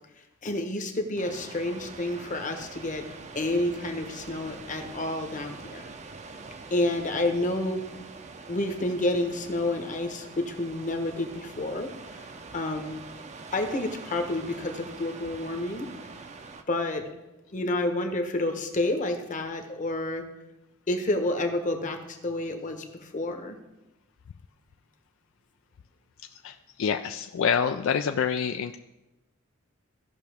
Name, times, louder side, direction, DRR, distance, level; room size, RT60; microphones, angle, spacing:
voice 1, 0.4-3.0 3.3-5.9 6.7-7.8 8.5-12.2 12.5-13.0 13.5-15.9 16.7-17.0 17.5-20.2 20.9-23.6, left 1 dB, 40° left, 5 dB, 1.0 m, -29 dB
sound 1, 1.2-16.6, right 4 dB, 35° right, 0.5 m, -44 dB
voice 2, 26.4-28.8, left 7 dB, 70° left, 7 dB, 0.4 m, -27 dB
15.5 x 5.8 x 3.4 m, 0.99 s
head